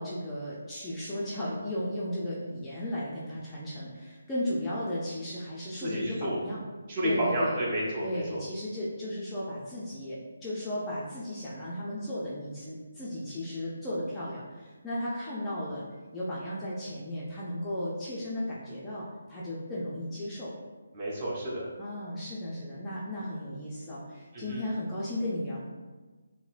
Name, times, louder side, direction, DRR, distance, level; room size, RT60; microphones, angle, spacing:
voice 1, 0.0-6.6 7.0-7.6 8.0-15.8 16.1-20.5 21.8-25.6, left 1 dB, 10° left, -9 dB, 0.5 m, -35 dB
voice 2, 5.8-6.4 6.9-8.4 20.9-21.6 24.3-24.6, equal, 30° right, -6 dB, 1.0 m, -30 dB
5.4 x 2.1 x 2.5 m, 1.3 s
figure-of-eight pair, 155°, 0 cm